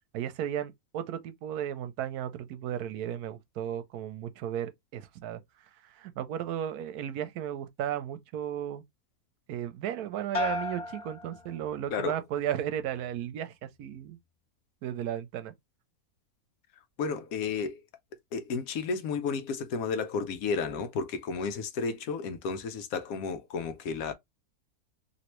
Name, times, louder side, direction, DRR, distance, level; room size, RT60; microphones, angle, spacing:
voice 1, 0.1-8.8 9.5-14.2 14.8-15.5, right 10 dB, 80° right, 1.1 m, -35 dB
sound 1, 10.3-12.1 12.5-13.1, left 2 dB, 40° left, 0.5 m, -36 dB
voice 2, 17.0-17.8 18.3-24.1, left 5 dB, 70° left, 1.0 m, -32 dB
3.1 x 2.9 x 2.9 m
omnidirectional pair, 1.6 m